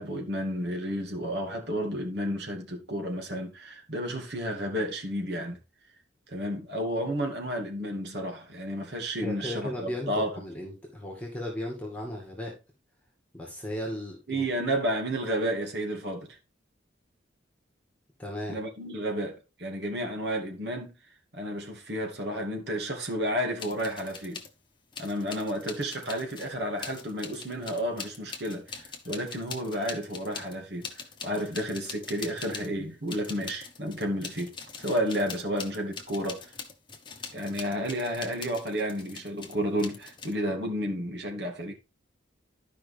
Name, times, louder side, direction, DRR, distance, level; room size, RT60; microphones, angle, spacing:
voice 1, 0.0-5.6 6.3-10.3 14.3-16.4 18.5-21.0 21.3-24.4 25.0-30.9 31.2-36.5 37.3-41.7, equal, 60° right, 2.4 m, -31 dB
voice 2, 9.2-12.6 13.3-14.4 18.2-18.6, left 1 dB, 5° left, 2.2 m, -36 dB
sound 1, 23.6-24.5 24.9-32.8 33.1-40.3, left 5 dB, 25° left, 1.1 m, -43 dB
12.0 x 5.3 x 3.4 m
head